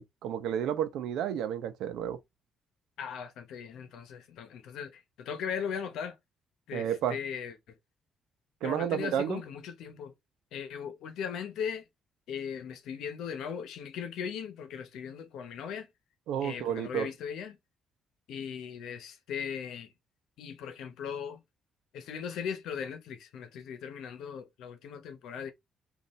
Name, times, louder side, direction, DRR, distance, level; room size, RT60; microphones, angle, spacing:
voice 1, 0.0-2.2 6.7-7.2 8.6-9.4 16.3-17.1, right 9 dB, 85° right, 0.7 m, -31 dB
voice 2, 3.0-6.2 6.7-7.7 8.6-10.1 10.5-11.8 12.3-15.9 16.4-17.6 18.3-19.9 20.4-21.4 21.9-25.5, left 7 dB, 85° left, 0.9 m, -38 dB
5.4 x 2.6 x 3.1 m
cardioid pair, 90°, 0 cm